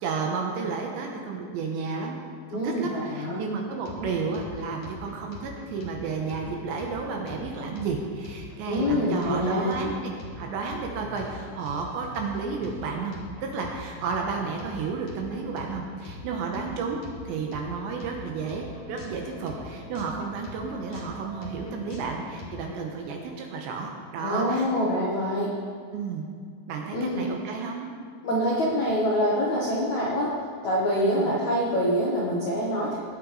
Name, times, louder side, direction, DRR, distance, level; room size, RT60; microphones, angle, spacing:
voice 1, 0.0-2.2 2.5-13.2 13.4-24.7 25.9-26.2 26.7-27.9 31.0-31.3, right 5 dB, 75° right, 1 dB, 3.0 m, -32 dB
voice 2, 2.5-3.4 8.7-9.7 24.2-25.5 26.9-27.2 28.2-30.3 30.6-33.0, equal, 65° left, -5 dB, 1.8 m, -25 dB
sound 1, 3.6-22.7, left 2 dB, 50° left, 2.8 m, -43 dB
19.0 x 8.8 x 4.8 m, 2.2 s
omnidirectional pair, 5.9 m